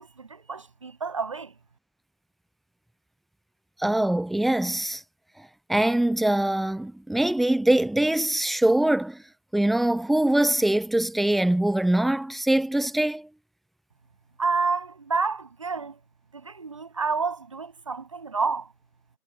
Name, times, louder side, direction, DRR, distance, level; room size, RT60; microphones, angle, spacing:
voice 1, 0.0-1.5 14.4-16.0 16.3-18.7, right 4 dB, 20° right, 6.5 m, -29 dB
voice 2, 3.8-5.0 5.7-9.2 9.5-13.3, right 1 dB, ahead, 1.1 m, -23 dB
figure-of-eight pair, 175°, 46 cm